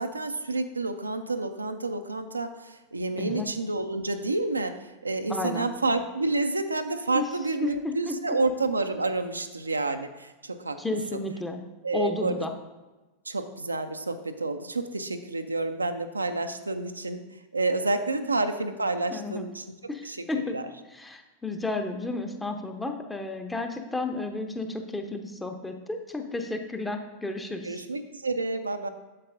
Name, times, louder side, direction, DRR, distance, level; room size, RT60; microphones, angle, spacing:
voice 1, 0.0-10.8 11.1-11.2 11.8-12.4 13.3-20.7 27.6-28.9, right 3 dB, 80° right, 8 dB, 0.4 m, -29 dB
voice 2, 5.3-5.7 7.1-7.3 7.6-8.1 10.8-11.6 11.9-12.5 18.2-18.3 19.1-19.5 19.9-20.6 20.9-27.8, left 2 dB, 10° left, 5 dB, 0.7 m, -32 dB
8.5 x 7.1 x 2.5 m, 1.2 s
figure-of-eight pair, 90°, 0 cm